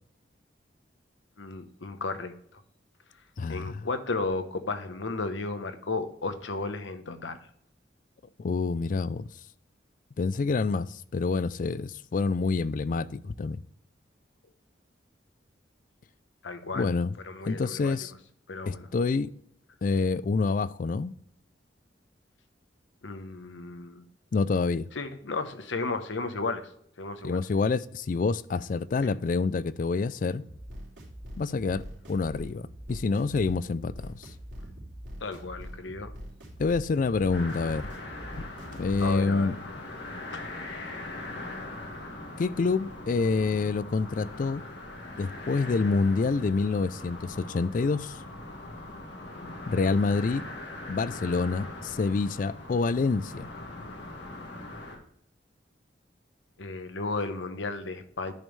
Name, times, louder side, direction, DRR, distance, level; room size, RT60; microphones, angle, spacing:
voice 1, 1.4-2.6 3.5-7.4 16.4-16.9 17.2-18.0 18.5-18.9 23.0-24.0 24.9-26.7 27.0-27.4 29.0-29.1 35.2-36.1 39.0-39.5 40.3-40.5 56.6-58.3, left 3 dB, 85° left, 0.9 m, -34 dB
voice 2, 3.4-3.8 8.4-9.3 10.2-13.6 16.7-17.1 17.5-18.1 18.7-19.3 19.8-21.1 24.3-24.9 27.2-30.4 31.4-34.3 36.6-37.9 38.7-39.6 42.4-44.6 45.2-48.2 49.7-50.4 50.9-53.5, left 4 dB, 45° left, 0.3 m, -27 dB
sound 1, 30.4-39.1, equal, 85° right, 2.9 m, -43 dB
sound 2, 37.3-55.0, left 2 dB, 70° left, 1.7 m, -41 dB
10.5 x 5.3 x 3.2 m
head